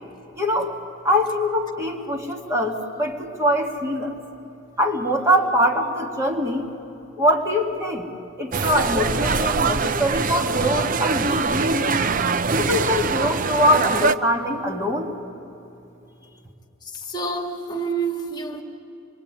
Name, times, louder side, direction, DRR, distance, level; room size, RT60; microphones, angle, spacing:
voice 1, 0.4-0.8 1.0-4.1 4.8-6.7 7.2-8.1 8.4-11.9 12.5-15.2, equal, 15° right, 1 dB, 2.0 m, -23 dB
sound 1, 8.5-14.1, right 4 dB, 40° right, 0.6 m, -23 dB
voice 2, 16.8-18.6, right 4 dB, 20° left, 2 dB, 2.1 m, -28 dB
26.5 x 23.0 x 9.7 m, 2.8 s
head